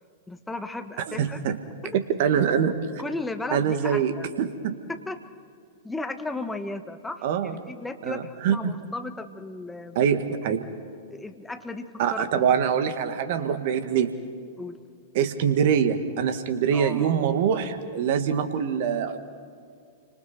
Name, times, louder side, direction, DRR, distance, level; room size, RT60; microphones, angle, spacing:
voice 1, 0.3-1.4 1.8-2.0 2.6-2.7 3.0-4.3 4.9-5.2 5.8-10.0 11.1-12.7 14.6-14.8 16.7-17.1, left 2 dB, 10° left, 8 dB, 1.5 m, -35 dB
voice 2, 1.1-1.6 1.9-2.7 3.5-4.1 4.4-4.8 7.2-7.5 8.0-8.7 10.0-10.7 12.0-14.1 15.1-19.2, right 8 dB, 55° right, 9 dB, 1.9 m, -24 dB
29.5 x 25.5 x 4.5 m, 2.2 s
figure-of-eight pair, 100°, 0 cm